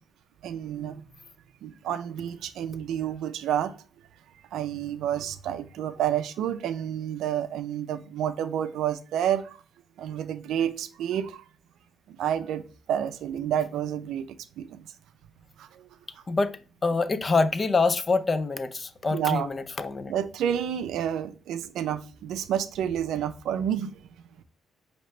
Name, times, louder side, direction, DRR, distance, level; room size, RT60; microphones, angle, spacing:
voice 1, 0.4-1.0 1.6-3.8 4.5-9.6 10.0-11.4 12.1-12.6 12.9-14.9 15.6-15.9 19.1-19.5 20.1-24.0, right 10 dB, 80° right, 0.4 m, -29 dB
voice 2, 16.8-20.1, left 3 dB, 30° left, 0.4 m, -25 dB
4.2 x 2.8 x 3.1 m
cardioid pair, 90°, 0 cm